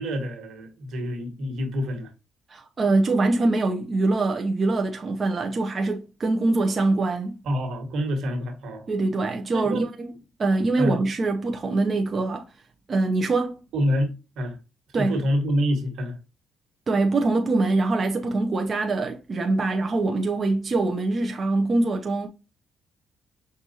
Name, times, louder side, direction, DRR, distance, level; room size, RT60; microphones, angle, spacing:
voice 1, 0.0-2.1 7.4-8.9 9.5-9.9 10.8-11.0 13.7-14.6 14.9-16.1, equal, 75° right, 1.6 m, -27 dB
voice 2, 2.5-7.4 8.9-12.5 12.9-13.6 14.9-15.2 16.9-22.3, right 2 dB, 40° right, 0.6 m, -24 dB
6.2 x 2.5 x 2.7 m
cardioid pair, 90°, 0 cm